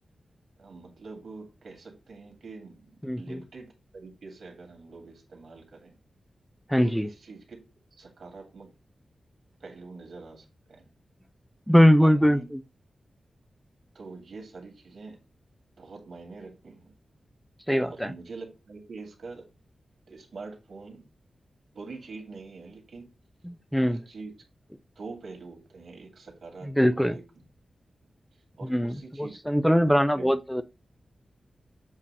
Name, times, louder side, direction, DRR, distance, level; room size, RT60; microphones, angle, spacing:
voice 1, 0.6-5.9 6.8-7.6 7.9-8.7 9.6-10.9 12.0-12.5 13.9-15.2 15.8-16.9 17.8-19.5 20.1-21.0 21.7-23.1 23.7-24.3 25.0-27.2 28.6-29.4 29.6-30.3, right 3 dB, 70° right, 1.9 m, -44 dB
voice 2, 3.0-3.4 6.7-7.1 11.7-12.4 17.7-18.1 23.5-24.0 26.8-27.1 28.7-30.6, equal, ahead, 0.3 m, -21 dB
7.3 x 2.7 x 5.3 m
wide cardioid pair, 165°, 0 cm